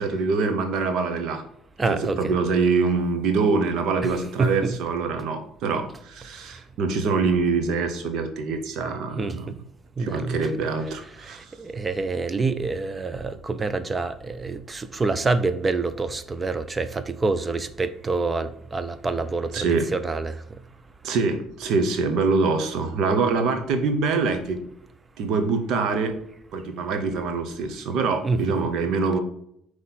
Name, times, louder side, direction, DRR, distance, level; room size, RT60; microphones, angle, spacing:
voice 1, 0.0-1.4 1.9-9.5 10.0-11.5 19.5-19.9 21.0-24.6 25.2-26.2 26.5-29.2, right 4 dB, 70° right, 7 dB, 0.9 m, -24 dB
voice 2, 1.8-2.2 4.0-4.1 4.4-4.8 9.2-9.6 10.0-10.4 11.2-20.4 28.2-28.4, right 3 dB, 25° right, 12 dB, 0.5 m, -27 dB
5.8 x 3.2 x 5.5 m, 0.72 s
supercardioid pair, 90°, 0 cm